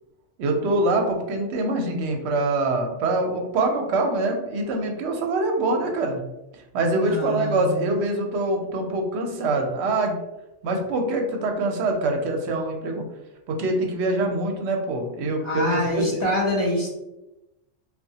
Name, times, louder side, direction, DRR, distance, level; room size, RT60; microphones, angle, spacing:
voice 1, 0.4-6.2 6.7-10.2 10.6-13.1 13.5-16.2, right 2 dB, 70° right, 2 dB, 0.8 m, -24 dB
voice 2, 6.9-7.8 15.4-16.9, left 1 dB, 35° left, -3 dB, 0.5 m, -25 dB
2.7 x 2.3 x 2.7 m, 0.96 s
omnidirectional pair, 1.2 m